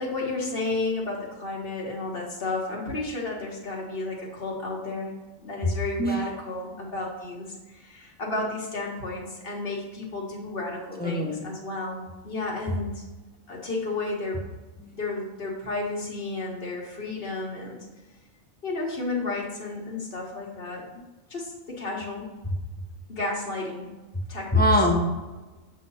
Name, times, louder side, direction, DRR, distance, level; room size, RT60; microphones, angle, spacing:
voice 1, 0.0-5.1 5.4-13.0 13.5-14.4 14.9-17.8 18.6-20.8 21.3-22.3 23.1-23.9 24.3-24.7, left 2 dB, 45° left, -2 dB, 1.5 m, -32 dB
voice 2, 11.0-11.4 14.8-15.0 22.4-22.5 24.5-25.3, left 1 dB, 10° left, 0 dB, 0.5 m, -23 dB
7.7 x 2.9 x 5.4 m, 1.2 s
omnidirectional pair, 1.4 m